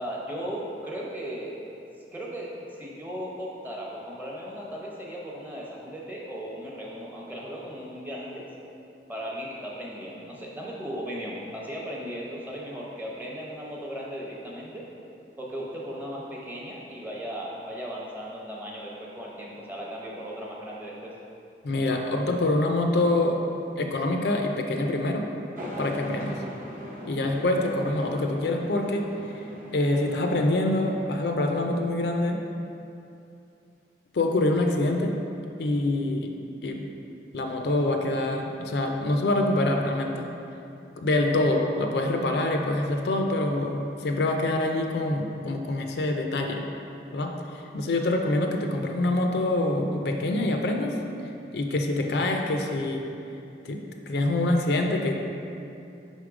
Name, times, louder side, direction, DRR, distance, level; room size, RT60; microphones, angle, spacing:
voice 1, 0.0-1.5 2.1-8.5 9.1-14.9 15.4-21.1, equal, 10° right, -4 dB, 0.7 m, -36 dB
voice 2, 21.6-23.4 23.8-25.3 25.8-26.4 27.1-29.4 29.7-32.4 34.1-35.2 35.6-36.3 36.6-36.9 37.3-40.3 41.0-46.6 47.1-51.0 51.5-53.1 53.6-55.1, left 2 dB, 65° left, 3 dB, 0.5 m, -25 dB
sound 1, 25.6-31.0, equal, 50° right, 0.9 m, -40 dB
5.5 x 3.6 x 4.8 m, 2.7 s
head